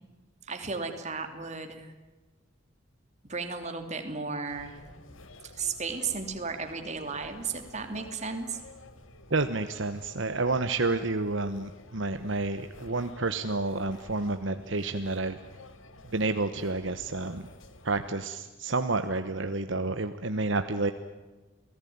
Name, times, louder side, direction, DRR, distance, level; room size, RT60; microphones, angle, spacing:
voice 1, 0.5-1.9 3.3-4.8 5.5-8.6, right 4 dB, 35° right, 6 dB, 3.0 m, -34 dB
sound 1, 4.4-18.1, left 2 dB, 75° left, 2.1 m, -51 dB
voice 2, 9.3-15.4 16.1-17.5 17.8-20.9, right 3 dB, 65° right, 9 dB, 1.2 m, -29 dB
29.0 x 18.5 x 9.5 m, 1.2 s
head